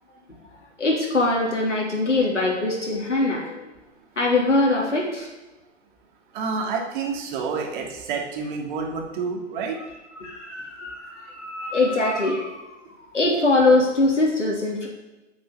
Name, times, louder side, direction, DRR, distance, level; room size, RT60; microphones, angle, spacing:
voice 1, 0.8-3.7 4.2-5.3 10.2-12.9 13.1-14.9, left 2 dB, 80° left, -2 dB, 3.5 m, -22 dB
voice 2, 6.3-9.8, right 5 dB, 45° right, 1 dB, 3.1 m, -28 dB
9.1 x 8.9 x 8.1 m, 1.0 s
figure-of-eight pair, 105°, 35 cm